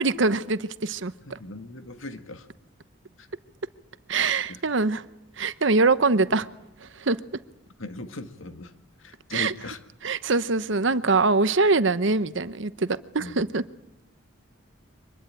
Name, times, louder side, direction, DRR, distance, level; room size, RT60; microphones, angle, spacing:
voice 1, 0.0-1.4 4.1-5.0 5.4-6.5 6.8-7.2 9.3-9.5 10.0-13.6, right 3 dB, 65° right, 14 dB, 0.9 m, -23 dB
voice 2, 1.2-2.5 3.2-3.3 4.5-4.6 7.8-8.7 9.0-9.8 13.2-13.4, left 2 dB, 80° left, 8 dB, 1.8 m, -39 dB
24.5 x 20.0 x 9.0 m, 0.85 s
head